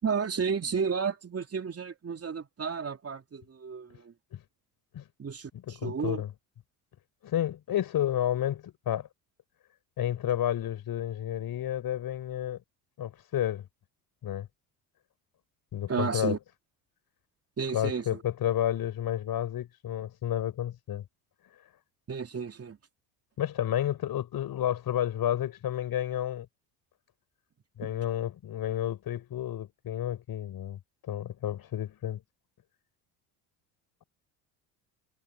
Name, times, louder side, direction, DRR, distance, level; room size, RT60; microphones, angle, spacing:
voice 1, 0.0-4.1 5.2-6.2 15.9-16.4 17.6-18.2 22.1-22.8 27.8-27.9, right 6 dB, 30° right, 3.4 m, -32 dB
voice 2, 5.7-6.3 7.2-9.1 10.0-12.6 13.0-13.7 14.2-14.5 15.7-16.4 17.7-21.0 23.4-26.5 27.8-30.8 31.1-32.2, left 11 dB, 50° left, 5.2 m, -31 dB
hypercardioid pair, 75°, 45 cm